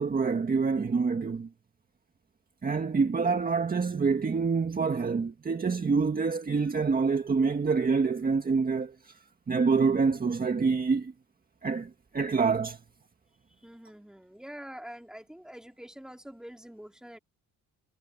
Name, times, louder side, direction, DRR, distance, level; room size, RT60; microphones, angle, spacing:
voice 1, 0.0-1.5 2.6-9.2 9.5-11.1 11.6-12.8, right 4 dB, 25° right, 1.9 m, -26 dB
voice 2, 13.6-17.2, equal, ahead, 3.8 m, -46 dB
cardioid pair, 125°, 33 cm